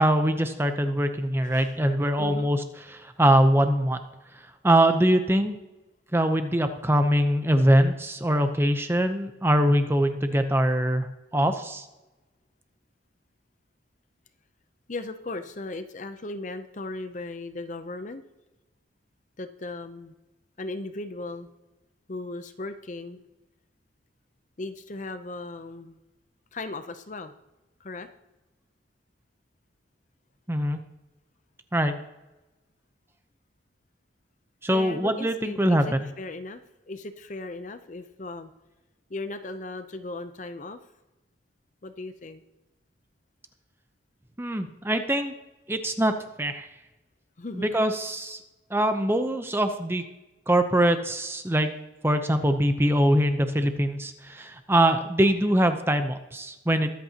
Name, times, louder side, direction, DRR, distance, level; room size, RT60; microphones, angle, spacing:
voice 1, 0.0-2.6 2.9-4.0 4.6-5.6 6.1-11.1 11.3-11.8 30.5-30.8 31.7-31.9 34.6-36.0 44.4-45.3 45.7-46.1 46.4-46.7 47.5-48.4 48.7-50.0 50.5-51.7 52.0-56.9, right 1 dB, 10° right, 8 dB, 0.7 m, -23 dB
voice 2, 1.4-1.8 2.2-2.5 14.9-18.2 19.4-20.1 20.6-21.5 22.1-23.2 24.6-26.0 26.5-27.3 27.8-28.1 34.7-36.6 36.9-38.5 39.1-40.8 41.8-42.4 47.4-47.7, left 2 dB, 40° left, 9 dB, 0.6 m, -37 dB
22.5 x 8.4 x 2.9 m, 1.0 s
head